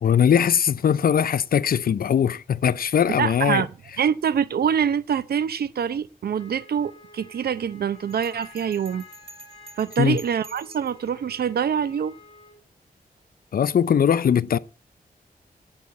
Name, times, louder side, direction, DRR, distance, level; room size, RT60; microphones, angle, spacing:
voice 1, 0.0-3.7 10.0-10.2 13.5-14.6, left 8 dB, 70° left, 0.6 m, -20 dB
voice 2, 3.2-3.7 4.0-9.0 9.8-12.1, right 7 dB, 85° right, 0.7 m, -25 dB
Wind instrument woodwind instrument, 6.3-12.6, left 2 dB, 35° left, 5.1 m, -49 dB
Bell, 8.1-11.1, right 2 dB, 35° right, 1.4 m, -47 dB
10.5 x 8.5 x 8.5 m
wide cardioid pair, 105°, 16 cm